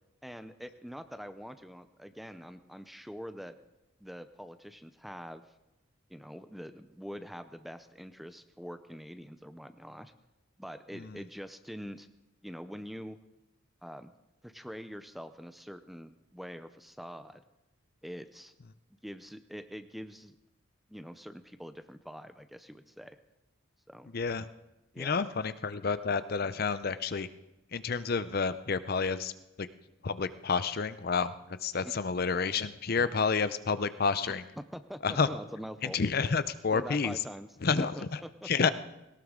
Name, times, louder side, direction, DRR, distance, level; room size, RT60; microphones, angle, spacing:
voice 1, 0.2-3.5 4.0-5.4 6.1-10.1 10.6-12.1 12.4-13.2 13.8-14.1 14.4-17.4 18.0-18.5 19.0-20.4 20.9-23.2 23.9-24.1 24.9-25.2 31.8-31.9 34.3-36.0 36.7-37.5 37.8-38.7, equal, ahead, 10 dB, 0.5 m, -44 dB
voice 2, 24.1-24.5 25.0-27.3 27.7-29.3 29.6-29.7 30.0-34.4 35.0-35.3 35.8-37.2 37.6-38.7, left 5 dB, 45° left, 14 dB, 0.5 m, -30 dB
18.5 x 17.5 x 3.7 m, 0.97 s
head